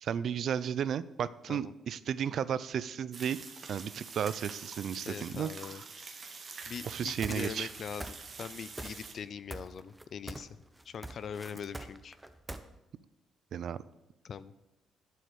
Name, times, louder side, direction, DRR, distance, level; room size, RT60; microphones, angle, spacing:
voice 1, 0.0-3.4 3.7-5.5 6.8-7.7 13.5-13.8, right 8 dB, 65° right, 17 dB, 0.5 m, -33 dB
sound 1, 3.1-9.1, right 4 dB, 45° right, 1.7 m, -46 dB
voice 2, 5.0-6.1 6.7-10.6 10.8-12.2 14.2-14.5, left 7 dB, 55° left, 15 dB, 0.5 m, -42 dB
sound 2, 6.6-9.7, right 9 dB, 80° right, 0.9 m, -63 dB
sound 3, 7.2-7.7 8.0-8.5 8.8-9.2 9.5-10.5 10.8-12.6, right 1 dB, 10° right, 0.9 m, -42 dB
8.1 x 7.8 x 8.0 m, 0.94 s
cardioid pair, 90°, 0 cm